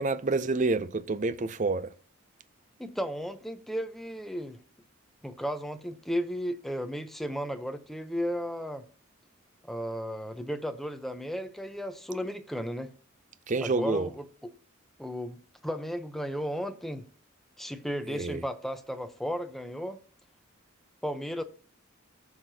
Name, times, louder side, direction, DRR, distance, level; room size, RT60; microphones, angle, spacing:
voice 1, 0.0-1.9 13.5-14.1 18.1-18.4, right 3 dB, 35° right, 0.5 m, -28 dB
voice 2, 2.8-4.6 5.2-8.8 9.7-12.9 13.6-14.5 15.0-17.0 17.6-20.0 21.0-21.4, equal, ahead, 0.7 m, -34 dB
14.5 x 5.9 x 2.8 m
head